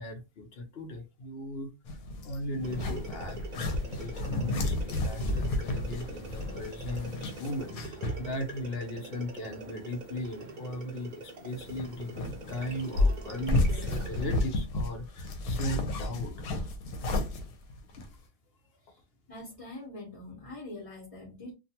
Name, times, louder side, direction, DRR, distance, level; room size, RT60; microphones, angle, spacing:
voice 1, 0.0-1.7 2.2-16.5 18.0-18.1, equal, 55° left, 0.7 m, -38 dB
sound 1, 1.9-8.3 8.5-8.6 11.6-18.1, left 2 dB, 85° left, 1.1 m, -32 dB
sound 2, 2.6-14.5, right 3 dB, 60° right, 0.5 m, -45 dB
voice 2, 19.3-21.5, left 2 dB, 25° left, 0.9 m, -44 dB
2.5 x 2.3 x 2.7 m
omnidirectional pair, 1.5 m